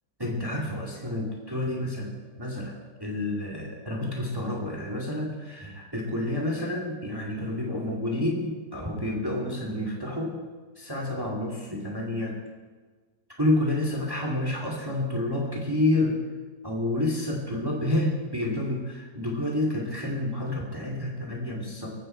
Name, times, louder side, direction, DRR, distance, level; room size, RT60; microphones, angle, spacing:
voice 1, 0.2-2.7 3.0-10.3 10.8-12.3 13.4-16.1 16.6-21.9, left 1 dB, 15° right, 0 dB, 2.3 m, -29 dB
20.0 x 16.0 x 4.5 m, 1.4 s
omnidirectional pair, 1.8 m